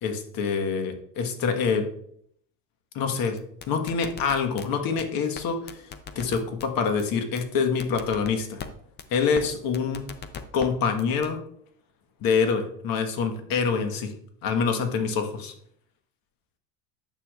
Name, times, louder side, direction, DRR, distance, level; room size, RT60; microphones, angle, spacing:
voice 1, 0.0-1.9 2.9-3.4 3.7-5.9 6.1-8.6 9.1-10.0 10.5-11.4 12.2-14.1 14.4-15.5, left 5 dB, 50° left, 6 dB, 1.4 m, -26 dB
sound 1, 3.4-4.7 5.0-5.1 5.4-5.5 5.7-6.7 7.0-7.1 7.4-7.5 7.8-8.7 9.0-9.1 9.4-9.5 9.7-10.7 11.0-11.3, left 7 dB, 25° left, 0.5 m, -38 dB
9.6 x 6.5 x 2.4 m, 0.66 s
supercardioid pair, 120°, 44 cm